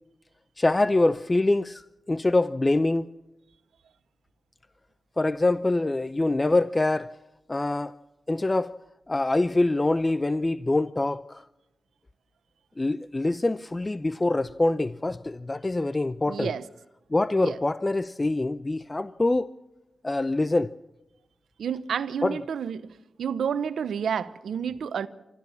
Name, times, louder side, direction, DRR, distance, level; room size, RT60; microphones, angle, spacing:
voice 1, 0.6-3.1 5.2-7.1 7.5-7.9 8.3-8.7 9.1-11.5 12.8-16.5 17.1-19.5 20.0-20.7 22.2-22.4, left 2 dB, 30° left, 0.7 m, -25 dB
voice 2, 16.3-16.6 17.4-17.6 21.6-22.9 23.2-25.1, right 7 dB, 85° right, 0.9 m, -30 dB
25.0 x 14.5 x 7.1 m
supercardioid pair, 40°, 0 cm